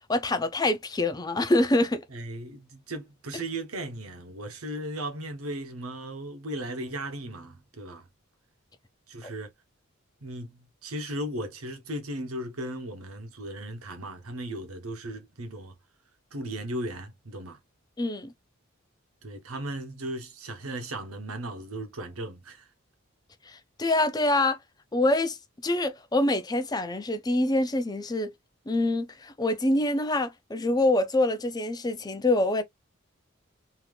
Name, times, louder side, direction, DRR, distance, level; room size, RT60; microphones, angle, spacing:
voice 1, 0.1-2.0 18.0-18.3 23.5-24.6 24.9-25.4 25.6-28.3 28.7-32.6, left 2 dB, 20° left, 0.4 m, -25 dB
voice 2, 2.1-8.1 9.1-9.5 10.2-15.8 16.3-17.6 19.2-22.7, right 1 dB, 85° right, 1.0 m, -36 dB
3.4 x 2.8 x 2.3 m
head